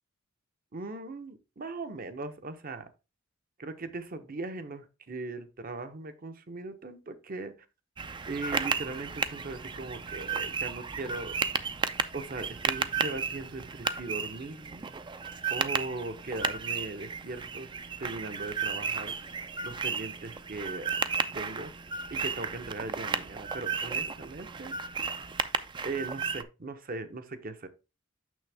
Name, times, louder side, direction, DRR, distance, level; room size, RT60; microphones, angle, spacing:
voice 1, 0.7-2.9 3.6-7.7 8.3-11.3 12.1-14.9 15.5-17.7 18.0-19.2 19.6-21.0 21.3-21.7 22.1-24.7 25.8-27.7, right 3 dB, 45° right, 10 dB, 0.8 m, -39 dB
sound 1, 8.0-26.4, right 5 dB, 25° right, 0.4 m, -34 dB
6.3 x 6.2 x 3.4 m, 0.29 s
head